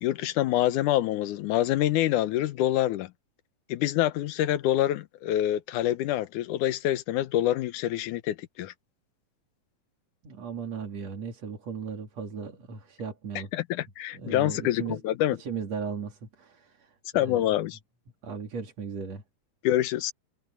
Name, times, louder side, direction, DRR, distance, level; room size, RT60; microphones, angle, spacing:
voice 1, 0.0-3.1 3.7-8.7 13.5-15.4 17.1-17.8 19.6-20.1, left 13 dB, 75° left, 2.4 m, -26 dB
voice 2, 10.2-13.5 14.1-15.0 15.4-16.9 17.2-17.4 18.2-19.2, right 5 dB, 55° right, 3.9 m, -36 dB
omnidirectional pair, 3.7 m